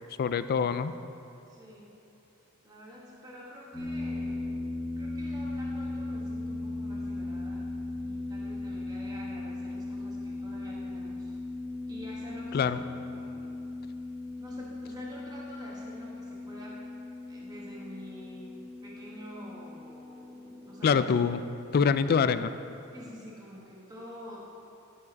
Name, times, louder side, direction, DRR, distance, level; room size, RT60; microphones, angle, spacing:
voice 1, 0.2-0.9 12.5-12.8 20.8-21.4 21.7-22.5, left 6 dB, 45° left, 12 dB, 0.3 m, -25 dB
voice 2, 1.5-1.9 2.6-4.6 5.0-7.7 8.0-11.3 11.9-13.6 14.4-16.8 17.3-21.1 22.9-24.4, equal, 20° right, -5 dB, 1.4 m, -48 dB
sound 1, 3.7-22.2, left 2 dB, 10° left, 1.5 m, -38 dB
12.0 x 4.9 x 5.2 m, 2.9 s
head